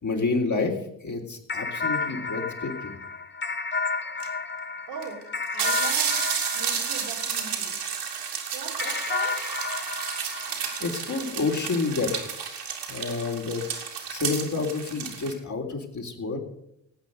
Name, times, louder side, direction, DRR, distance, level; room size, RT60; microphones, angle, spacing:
voice 1, 0.0-3.0 10.5-13.6 14.1-16.4, left 4 dB, 40° left, 2 dB, 3.5 m, -29 dB
sound 1, 1.5-8.1 8.8-11.5, left 4 dB, 25° left, 1.3 m, -32 dB
sound 2, 4.2-4.3 5.0-5.1 5.4-15.3, right 7 dB, 60° right, 3.2 m, -31 dB
voice 2, 4.9-5.2 5.5-6.2 6.5-7.9 8.5-9.5, right 6 dB, 75° right, -1 dB, 3.7 m, -39 dB
18.5 x 8.7 x 6.6 m, 0.79 s
hypercardioid pair, 45°, 46 cm